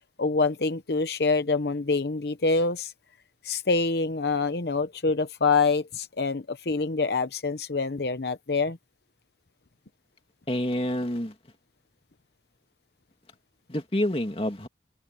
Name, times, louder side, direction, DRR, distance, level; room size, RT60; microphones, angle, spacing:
voice 1, 0.2-2.9 3.4-8.8, left 4 dB, 70° left, 0.9 m, -26 dB
voice 2, 10.5-11.3 13.7-14.7, left 1 dB, 30° left, 2.5 m, -28 dB
open air
head